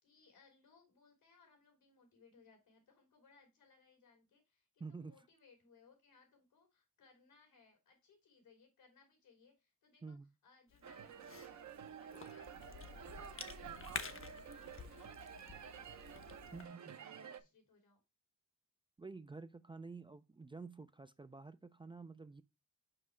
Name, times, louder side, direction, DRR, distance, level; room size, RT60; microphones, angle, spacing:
voice 1, 0.0-18.0, left 4 dB, 90° left, 3.2 m, -68 dB
voice 2, 4.8-5.1 10.0-10.3 16.5-17.0 19.0-22.4, right 4 dB, 15° right, 0.3 m, -50 dB
Cough / Chewing mastication, 10.7-16.7, left 6 dB, 40° left, 0.7 m, -50 dB
sound 1, 10.8-17.4, right 8 dB, 55° right, 0.7 m, -51 dB
5.7 x 5.3 x 3.2 m
cardioid pair, 100°, 35 cm